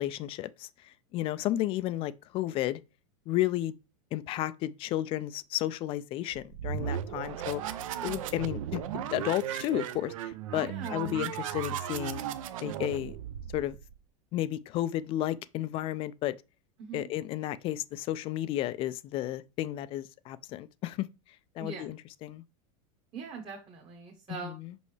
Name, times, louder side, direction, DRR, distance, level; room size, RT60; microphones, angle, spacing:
voice 1, 0.0-2.8 3.3-3.7 4.1-7.6 8.0-12.2 12.6-13.2 13.5-13.8 14.3-16.3 16.9-21.1 21.6-22.4 24.3-24.7, left 14 dB, 30° left, 0.3 m, -32 dB
sound 1, 6.3-14.0, right 10 dB, 75° right, 0.6 m, -36 dB
voice 2, 7.1-7.9 10.5-11.3 16.8-17.1 21.6-21.8 23.1-24.5, right 5 dB, 30° right, 1.1 m, -42 dB
5.5 x 5.3 x 3.2 m
supercardioid pair, 135°, 17 cm